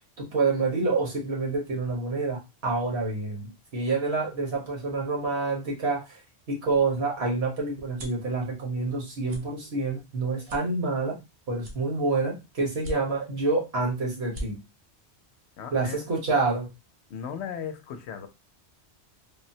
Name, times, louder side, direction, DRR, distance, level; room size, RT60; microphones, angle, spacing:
voice 1, 0.2-6.2 6.5-11.2 11.5-14.6 15.7-16.7, right 3 dB, 70° right, 1.4 m, -27 dB
sound 1, 7.9-8.3 8.8-9.0 9.2-9.4 9.9-10.0 10.4-11.2 11.6-12.3 12.7-13.4 13.8-13.9 14.2-14.5, equal, 50° right, 0.8 m, -40 dB
voice 2, 15.6-16.1 17.1-18.3, left 7 dB, 75° left, 0.8 m, -36 dB
3.6 x 2.0 x 2.7 m
omnidirectional pair, 1.2 m